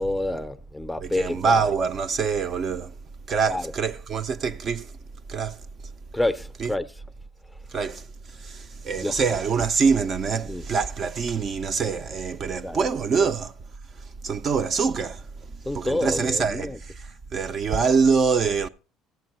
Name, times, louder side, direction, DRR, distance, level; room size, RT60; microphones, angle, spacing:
voice 1, 0.0-1.6 3.5-3.7 6.1-6.9 9.0-9.2 10.5-10.6 12.6-12.8 13.2-13.3 15.6-16.8, left 1 dB, 5° left, 0.6 m, -28 dB
voice 2, 1.0-2.9 3.3-4.9 5.3-5.6 6.6-6.7 7.7-8.0 8.3-13.5 14.2-15.3 15.7-18.7, right 5 dB, 40° right, 0.5 m, -25 dB
15.0 x 7.4 x 4.3 m
cardioid pair, 110°, 0 cm